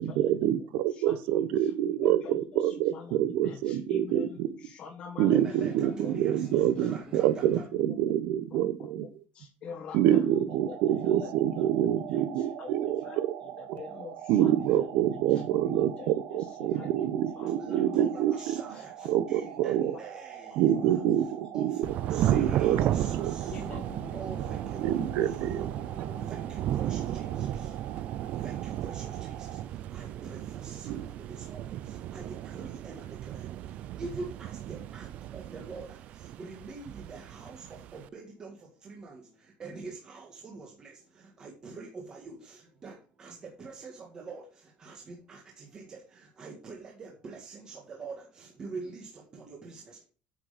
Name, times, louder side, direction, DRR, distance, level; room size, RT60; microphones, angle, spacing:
voice 1, 0.0-4.5 5.2-9.1 9.9-13.3 13.7-13.8 14.3-18.6 19.1-19.9 20.6-21.8 22.1-22.8 23.2-23.3 24.8-25.7 30.9-31.0, right 11 dB, 65° right, 13 dB, 1.0 m, -26 dB
voice 2, 0.8-1.2 1.6-1.7 2.0-6.1 6.5-7.2 8.5-8.7 9.3-14.9 15.3-17.1 17.3-19.1 19.4-19.6 19.9-20.0 20.7-21.0 22.0-23.1 23.5-24.6, left 6 dB, 35° left, -1 dB, 1.5 m, -46 dB
voice 3, 5.3-7.7 17.6-21.0 21.5-28.0 28.3-50.0, right 3 dB, 20° right, -1 dB, 1.7 m, -45 dB
sound 1, 10.5-29.6, right 10 dB, 85° right, 1.8 m, -44 dB
Thunder / Rain, 21.8-38.1, right 12 dB, 40° right, 0.4 m, -34 dB
9.3 x 6.3 x 5.0 m, 0.37 s
cardioid pair, 180°, 3 cm